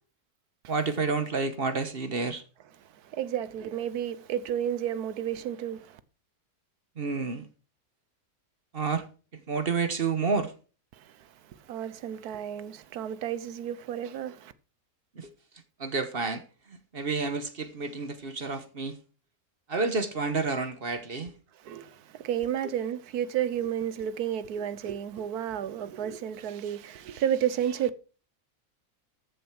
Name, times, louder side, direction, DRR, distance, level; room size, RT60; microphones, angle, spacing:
voice 1, 0.7-2.4 7.0-7.5 8.7-9.1 9.3-10.5 15.2-15.3 15.8-16.4 16.7-19.0 19.7-21.3, right 4 dB, 40° right, 1.2 m, -30 dB
voice 2, 2.8-6.0 10.9-14.5 21.5-27.9, right 10 dB, 85° right, 1.3 m, -32 dB
14.0 x 7.1 x 4.6 m
omnidirectional pair, 1.6 m